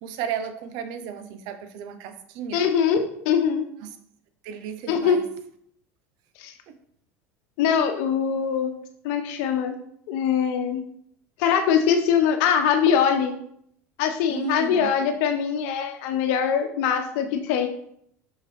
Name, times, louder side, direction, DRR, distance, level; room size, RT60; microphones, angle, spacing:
voice 1, 0.0-2.6 3.8-3.9 4.4-5.2 6.7-6.8 14.3-14.9, right 7 dB, 60° right, 9 dB, 0.8 m, -34 dB
voice 2, 2.5-3.7 4.9-5.2 6.4-6.5 7.6-8.7 9.0-9.8 10.1-10.8 11.4-13.3 14.0-17.7, left 7 dB, 65° left, 6 dB, 1.0 m, -22 dB
5.9 x 5.4 x 3.5 m, 0.69 s
hypercardioid pair, 80°, 8 cm